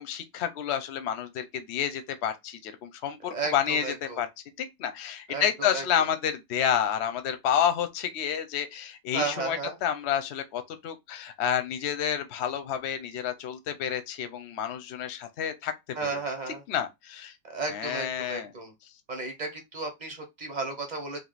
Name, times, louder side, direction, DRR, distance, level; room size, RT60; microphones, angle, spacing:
voice 1, 0.0-4.3 4.6-15.7 16.7-17.3 17.7-18.5, left 9 dB, 55° left, 0.7 m, -29 dB
voice 2, 3.2-4.2 5.3-6.1 9.1-9.8 15.9-16.6 17.5-18.7 19.1-21.2, right 3 dB, 30° right, 0.9 m, -34 dB
3.6 x 2.7 x 4.0 m
omnidirectional pair, 1.9 m